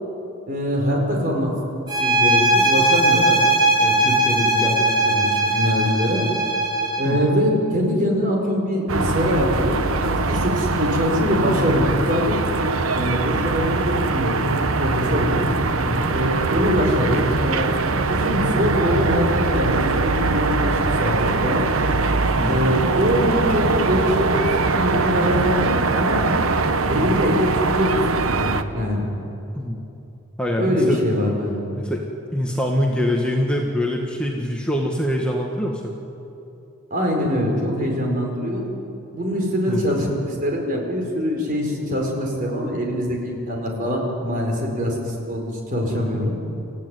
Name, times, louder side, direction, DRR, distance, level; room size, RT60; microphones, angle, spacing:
voice 1, 0.5-1.5 1.9-3.4 3.8-6.2 7.0-12.4 12.9-15.4 16.0-21.6 22.4-24.5 24.7-26.2 26.9-29.1 30.6-31.6 36.9-38.6 39.1-46.3, equal, 40° right, 1 dB, 4.8 m, -23 dB
sound 1, 1.9-7.2, right 2 dB, 20° right, 3.5 m, -19 dB
sound 2, 8.9-28.6, right 3 dB, 80° right, 1.1 m, -22 dB
voice 2, 15.7-16.1 22.4-22.7 26.9-27.2 29.5-29.8 30.4-31.0 31.8-32.0 32.3-35.9 39.7-39.8, equal, 5° left, -1 dB, 1.6 m, -24 dB
27.5 x 15.0 x 9.6 m, 2.9 s
head